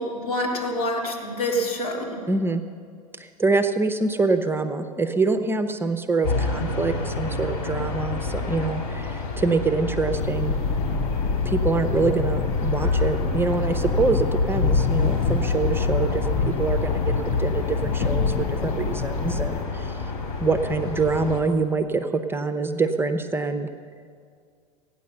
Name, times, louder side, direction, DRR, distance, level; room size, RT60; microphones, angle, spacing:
voice 1, 0.0-2.2, equal, 75° left, -1 dB, 3.3 m, -27 dB
voice 2, 2.3-2.6 3.2-10.5 11.4-20.0 20.4-23.7, right 3 dB, 10° right, 7 dB, 0.8 m, -25 dB
sound 1, 6.2-21.4, left 3 dB, 60° left, 4.0 m, -30 dB
sound 2, 10.1-19.6, left 4 dB, 35° left, 0.7 m, -25 dB
16.5 x 9.6 x 6.8 m, 2.1 s
figure-of-eight pair, 85°, 19 cm